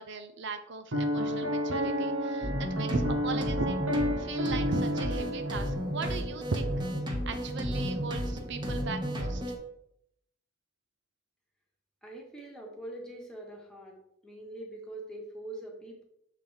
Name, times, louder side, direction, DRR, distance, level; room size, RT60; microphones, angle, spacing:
voice 1, 0.0-3.9 4.2-6.7 7.3-9.4, right 4 dB, 65° right, 8 dB, 0.6 m, -37 dB
Piano, 0.9-6.2, equal, 85° right, 1.3 m, -31 dB
sound 1, 2.4-9.6, equal, 25° right, 1.2 m, -33 dB
voice 2, 12.0-14.0 14.2-16.0, right 1 dB, 5° left, -1 dB, 1.4 m, -43 dB
7.1 x 3.9 x 4.6 m, 0.74 s
head